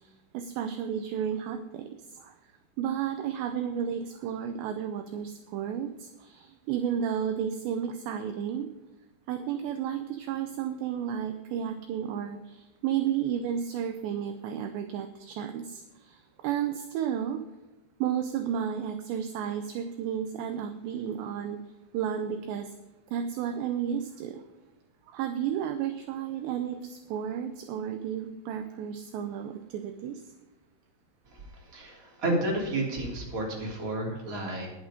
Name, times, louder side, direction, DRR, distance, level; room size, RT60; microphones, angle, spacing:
voice 1, 0.3-1.9 2.8-8.7 9.3-15.8 16.4-17.4 18.0-21.6 21.9-22.7 23.1-24.4 25.1-30.2, right 9 dB, 80° right, 9 dB, 2.6 m, -32 dB
voice 2, 31.3-34.7, right 1 dB, 20° right, -2 dB, 2.8 m, -31 dB
11.0 x 10.5 x 5.1 m, 1.1 s
omnidirectional pair, 5.6 m